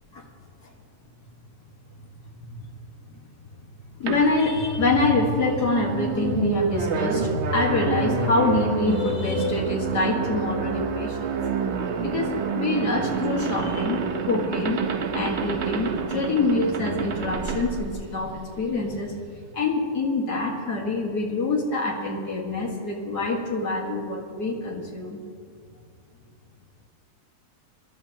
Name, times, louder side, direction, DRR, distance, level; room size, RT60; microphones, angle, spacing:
voice 1, 4.0-11.4 12.0-14.0 14.2-14.8 15.1-19.1 19.5-25.2, left 3 dB, 90° left, -2 dB, 2.4 m, -25 dB
sound 1, 4.1-18.6, right 6 dB, 55° right, 1.0 m, -28 dB
25.5 x 12.0 x 3.0 m, 2.2 s
omnidirectional pair, 1.7 m